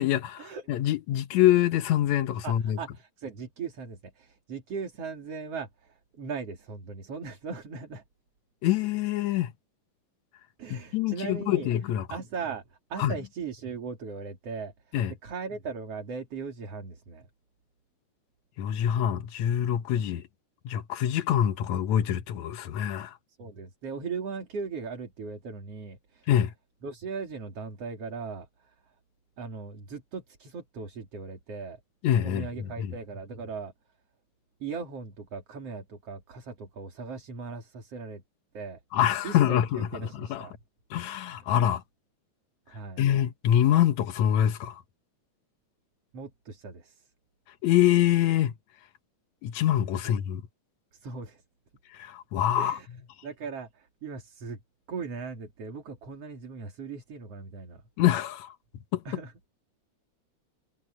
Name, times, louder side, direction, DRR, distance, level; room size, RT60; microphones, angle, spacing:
voice 1, 0.0-2.8 8.6-9.5 10.7-12.1 13.0-13.1 14.9-15.1 18.6-20.2 20.7-23.1 26.3-26.5 32.0-32.5 32.8-32.9 38.9-39.9 40.1-40.5 40.9-41.8 43.0-44.8 47.6-48.5 49.4-50.4 52.0-52.8 58.0-58.5 58.9-59.0, left 11 dB, 70° left, 2.2 m, -25 dB
voice 2, 2.4-8.0 10.6-11.7 12.1-17.3 23.4-26.3 26.8-28.9 29.4-31.8 32.2-33.7 34.6-38.2 38.5-38.8 39.2-40.6 42.7-43.0 46.1-47.1 50.0-50.1 50.9-51.4 52.6-52.9 53.2-54.6 54.9-57.8 59.1-59.3, right 5 dB, 55° right, 3.9 m, -38 dB
omnidirectional pair, 3.5 m